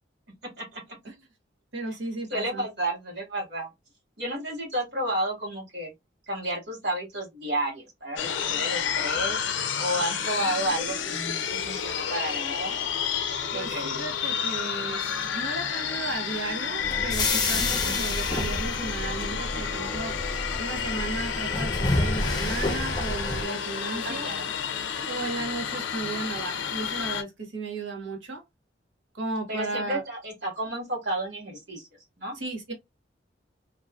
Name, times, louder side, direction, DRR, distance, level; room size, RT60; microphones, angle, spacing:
voice 1, 0.6-1.0 2.3-3.7 4.2-5.9 6.3-9.4 9.8-12.8 13.5-13.9 17.8-18.2 24.0-24.5 29.5-32.3, right 1 dB, 65° right, 1.7 m, -32 dB
voice 2, 1.7-2.6 13.5-15.0 15.3-20.2 20.6-24.3 25.1-28.4 29.1-30.0 32.4-32.7, right 3 dB, 85° right, 1.1 m, -35 dB
sound 1, 8.2-27.2, left 7 dB, 80° left, 0.4 m, -30 dB
sound 2, 16.8-23.4, left 2 dB, 20° left, 0.6 m, -29 dB
2.9 x 2.5 x 2.3 m
head